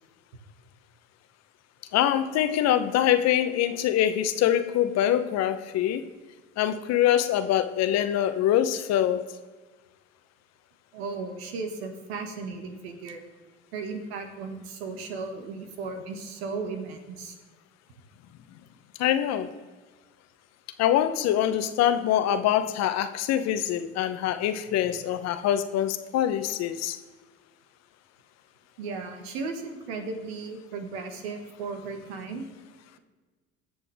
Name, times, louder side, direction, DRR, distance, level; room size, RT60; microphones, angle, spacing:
voice 1, 1.9-6.0 6.6-9.3 19.0-19.5 20.8-27.0, left 11 dB, 55° left, 11 dB, 0.9 m, -24 dB
voice 2, 10.9-13.2 13.7-17.4 28.8-32.5, right 4 dB, 80° right, 5 dB, 1.8 m, -35 dB
20.0 x 6.9 x 3.5 m, 1.4 s
hypercardioid pair, 85°, 31 cm